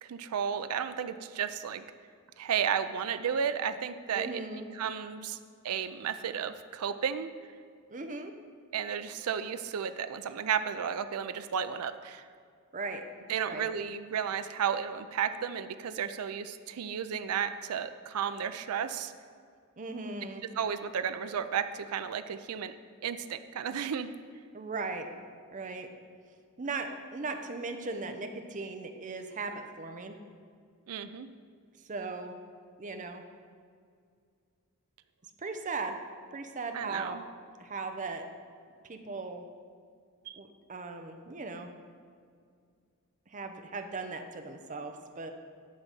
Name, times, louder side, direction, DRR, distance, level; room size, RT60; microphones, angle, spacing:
voice 1, 0.0-1.8 2.4-4.4 4.7-5.4 5.6-7.3 8.7-12.2 13.3-19.1 20.6-22.7 23.0-24.1 30.9-31.3 36.7-37.2 40.3-40.4, right 7 dB, 80° right, 10 dB, 0.4 m, -33 dB
voice 2, 4.1-4.7 7.9-8.3 12.7-13.0 13.4-13.7 19.8-20.4 24.5-25.1 25.5-25.9 26.6-30.2 31.9-32.4 32.8-33.2 35.4-36.0 36.3-37.2 37.6-38.3 38.8-39.4 40.4-41.7 43.3-45.3, right 3 dB, 35° right, 6 dB, 0.7 m, -38 dB
10.5 x 4.0 x 7.4 m, 2.2 s
head